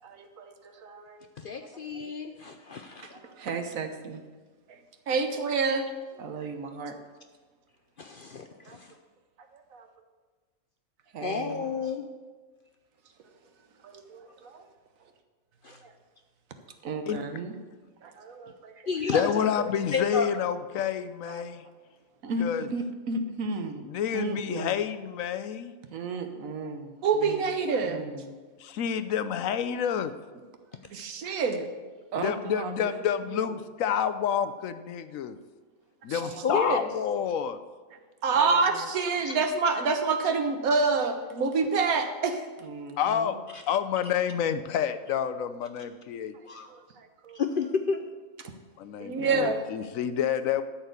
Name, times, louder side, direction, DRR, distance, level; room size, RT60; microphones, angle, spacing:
voice 1, 0.0-1.2 1.5-1.7 2.3-2.4 3.0-4.2 6.2-7.0 8.6-9.0 9.4-9.9 11.1-11.7 13.2-13.4 13.8-14.7 15.0-15.1 15.7-15.9 16.8-17.6 18.1-18.9 22.2-24.8 25.9-27.4 27.8-28.4 32.1-33.5 36.2-36.8 38.3-38.9 42.6-43.4 46.3-47.4 48.4-48.6 49.1-49.5, right 3 dB, 70° right, 7 dB, 1.4 m, -37 dB
voice 2, 1.4-3.1 8.0-8.9 11.2-12.1 15.6-15.8 18.9-20.3 36.4-36.7 39.2-39.4 43.5-43.6 46.5-46.7 47.3-48.0, left 5 dB, 55° left, 6 dB, 0.6 m, -31 dB
voice 3, 5.1-5.9 18.0-18.1 21.3-21.4 27.0-28.0 30.9-31.7 36.1-36.2 36.5-36.8 38.2-42.5 49.0-49.6, right 4 dB, 85° right, 7 dB, 1.5 m, -26 dB
voice 4, 19.1-21.6 22.4-22.6 23.9-25.7 28.6-30.1 32.2-35.4 36.0-37.6 43.0-43.4 43.7-46.3 48.8-50.6, left 8 dB, 75° left, 12 dB, 1.0 m, -29 dB
13.0 x 4.4 x 8.2 m, 1.4 s
omnidirectional pair, 1.5 m